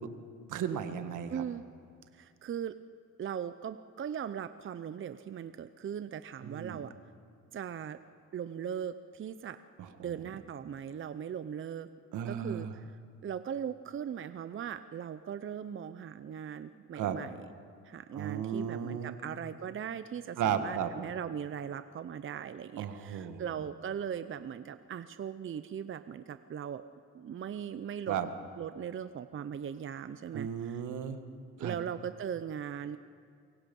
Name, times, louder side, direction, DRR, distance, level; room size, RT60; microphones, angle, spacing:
voice 1, 0.5-1.4 6.4-6.9 9.8-10.3 12.1-12.7 16.9-17.2 18.1-19.2 20.4-20.9 22.8-23.6 28.1-28.3 30.3-31.2 31.6-31.8, right 8 dB, 80° right, 8 dB, 1.7 m, -35 dB
voice 2, 1.3-1.6 2.1-2.8 3.2-6.9 7.5-8.0 8.3-9.6 10.0-11.9 12.2-12.8 13.2-17.4 17.8-26.8 27.1-28.2 28.6-30.8 31.6-33.0, right 8 dB, 40° right, 12 dB, 0.7 m, -39 dB
29.0 x 23.5 x 5.4 m, 2.2 s
cardioid pair, 90°, 30 cm